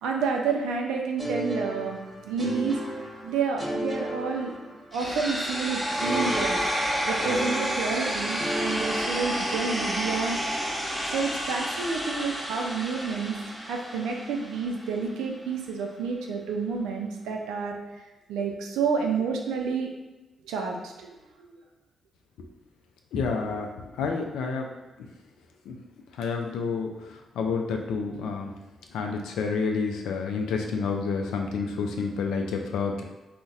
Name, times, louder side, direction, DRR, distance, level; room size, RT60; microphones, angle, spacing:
voice 1, 0.0-2.8 3.2-4.5 4.9-6.6 7.0-10.4 11.1-13.4 13.6-17.8 18.3-19.9 20.4-21.2, right 5 dB, 85° right, 1 dB, 0.4 m, -29 dB
sound 1, 1.2-5.1 6.0-9.8, right 1 dB, 30° right, 1.1 m, -34 dB
sound 2, 4.9-14.9, equal, 10° right, 0.8 m, -30 dB
voice 2, 23.1-23.7 24.0-24.7 25.7-25.8 26.2-26.9 27.4-28.5 28.9-33.0, left 5 dB, 80° left, 2 dB, 0.3 m, -29 dB
3.9 x 2.1 x 2.4 m, 1.1 s
hypercardioid pair, 45°, 0 cm